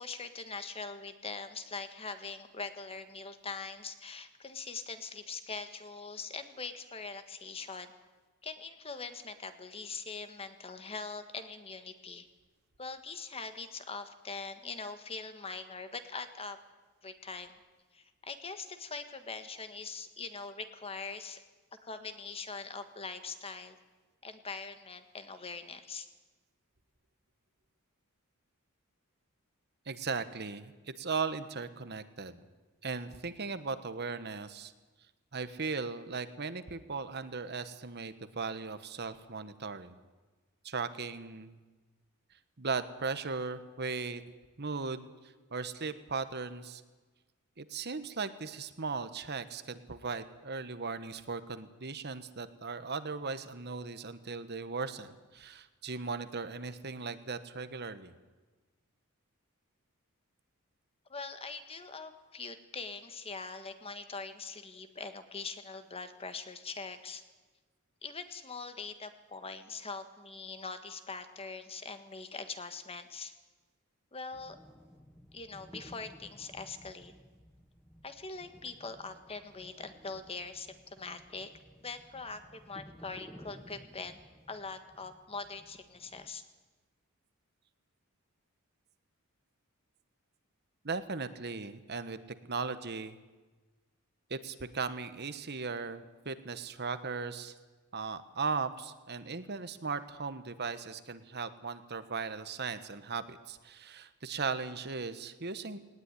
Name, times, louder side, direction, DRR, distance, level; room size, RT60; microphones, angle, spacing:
voice 1, 0.0-7.9 8.4-12.3 12.8-16.6 17.0-17.6 17.9-21.4 21.8-23.8 24.2-26.1 61.1-67.2 68.0-73.3 74.1-74.6 75.3-77.1 78.0-81.5 81.8-84.2 84.5-86.4, left 4 dB, 25° left, 9 dB, 1.6 m, -42 dB
voice 2, 29.9-30.7 31.0-32.4 32.8-34.7 35.3-40.0 40.6-41.6 42.6-44.2 44.6-45.1 45.5-46.8 47.6-58.1 90.8-92.2 92.5-93.2 94.3-97.5 97.9-105.8, right 4 dB, 50° right, 12 dB, 1.2 m, -37 dB
sound 1, 74.3-86.3, equal, 5° left, 1.4 m, -56 dB
19.0 x 19.0 x 9.9 m, 1.3 s
head